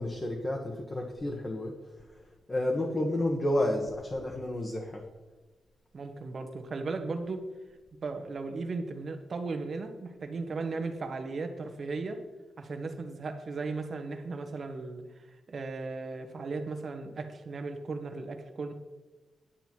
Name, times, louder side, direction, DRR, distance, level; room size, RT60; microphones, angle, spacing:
voice 1, 0.0-1.7 2.5-5.0, left 1 dB, 25° left, 1 dB, 1.4 m, -30 dB
voice 2, 5.9-7.4 8.0-12.2 12.6-18.7, right 3 dB, 50° right, 6 dB, 1.3 m, -36 dB
10.5 x 9.0 x 4.6 m, 1.2 s
cardioid pair, 105°, 0 cm